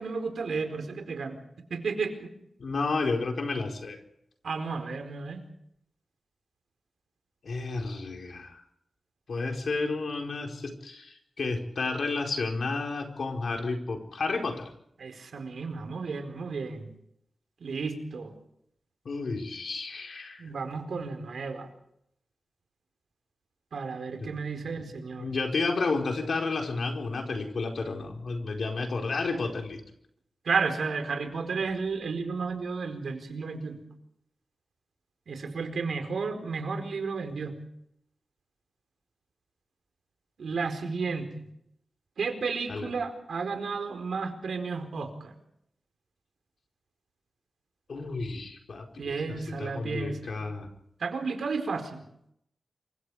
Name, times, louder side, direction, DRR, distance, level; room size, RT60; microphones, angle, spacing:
voice 1, 0.0-1.4 1.7-2.3 4.4-5.4 15.0-16.9 17.6-18.3 20.4-21.7 23.7-25.4 30.4-33.8 35.3-37.6 40.4-41.4 42.2-45.3 49.0-50.4 51.0-52.0, right 4 dB, 85° right, 6 dB, 4.6 m, -32 dB
voice 2, 2.6-4.0 7.4-8.6 9.3-14.7 19.0-20.4 24.2-24.3 25.2-29.8 42.7-42.9 47.9-50.7, left 3 dB, 65° left, 2 dB, 4.6 m, -31 dB
28.0 x 25.0 x 5.0 m, 0.75 s
wide cardioid pair, 125°, 0 cm